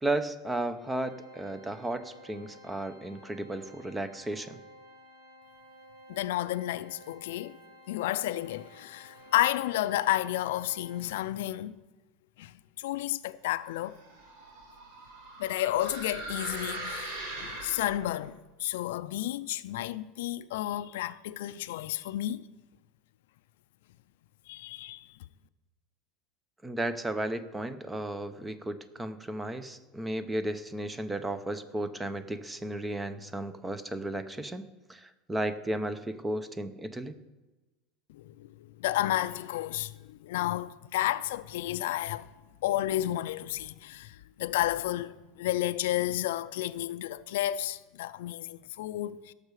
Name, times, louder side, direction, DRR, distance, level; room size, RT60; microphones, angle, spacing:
voice 1, 0.0-4.6 26.6-37.2, right 1 dB, 10° right, 0.6 m, -34 dB
Organ, 0.8-11.5, equal, 60° right, 3.2 m, -54 dB
voice 2, 6.1-7.6 7.9-11.8 12.4-12.5 12.8-14.0 15.4-22.5 24.5-25.1 38.1-42.3 42.6-49.3, left 14 dB, 85° left, 0.4 m, -31 dB
sound 1, 13.8-18.3, right 2 dB, 80° right, 2.9 m, -41 dB
17.0 x 6.6 x 4.8 m
supercardioid pair, 140°, 0 cm